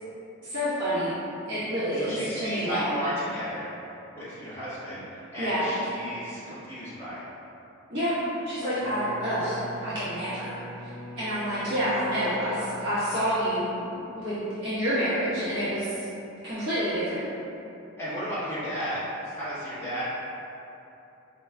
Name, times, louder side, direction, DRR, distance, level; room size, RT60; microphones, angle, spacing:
voice 1, 0.4-1.1 1.5-2.9 5.4-5.6 7.9-8.2 8.4-10.6 11.2-15.9 16.4-17.2, equal, 60° right, -14 dB, 1.4 m, -28 dB
voice 2, 2.0-3.7 4.1-5.0 5.3-7.2 12.1-12.5 18.0-20.0, equal, 10° left, -14 dB, 1.2 m, -34 dB
Bowed string instrument, 8.7-14.1, right 1 dB, 75° right, 0.4 m, -43 dB
5.0 x 3.1 x 2.3 m, 2.9 s
head